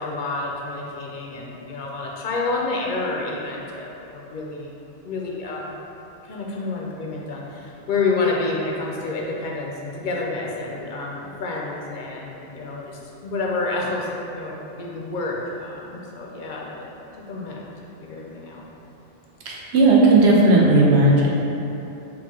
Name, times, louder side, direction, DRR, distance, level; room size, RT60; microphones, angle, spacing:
voice 1, 0.0-4.7 5.0-5.8 6.3-16.9 17.3-17.6 18.0-18.6, left 3 dB, 60° left, -2 dB, 0.5 m, -29 dB
voice 2, 19.5-21.3, right 2 dB, 70° right, -3 dB, 0.9 m, -15 dB
4.5 x 2.3 x 3.6 m, 2.9 s
omnidirectional pair, 1.2 m